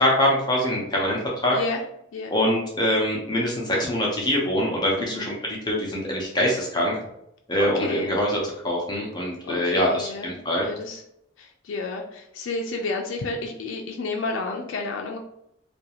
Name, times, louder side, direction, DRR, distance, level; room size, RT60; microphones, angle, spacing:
voice 1, 0.0-1.6 2.3-5.3 5.7-7.0 7.5-10.7, left 1 dB, 20° left, -3 dB, 0.5 m, -24 dB
voice 2, 1.5-1.8 2.1-2.3 5.0-5.3 7.6-8.1 9.5-10.3 10.6-11.0 11.4-15.2, left 3 dB, 70° left, 1 dB, 0.4 m, -31 dB
2.5 x 2.3 x 2.9 m, 0.78 s
head